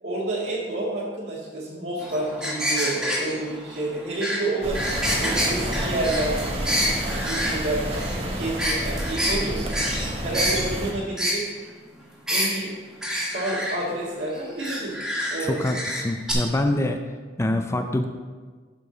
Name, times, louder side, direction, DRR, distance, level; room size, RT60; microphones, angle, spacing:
voice 1, 0.0-4.8 5.2-8.0 8.4-9.7 10.2-11.4 12.3-12.7 13.3-14.9 15.3-15.7, right 2 dB, 65° right, -6 dB, 2.0 m, -29 dB
sound 1, 2.0-7.5 7.9-8.2 8.6-9.4 9.7-10.7 11.2-11.4 12.3-12.5 13.0-13.8 14.6-16.0 16.3-16.4, equal, 5° right, 1.7 m, -27 dB
sound 2, 4.6-10.9, right 1 dB, 35° right, 1.1 m, -29 dB
voice 2, 15.4-17.0 17.4-18.0, left 1 dB, 15° left, 5 dB, 0.4 m, -25 dB
11.5 x 5.0 x 3.9 m, 1.5 s
head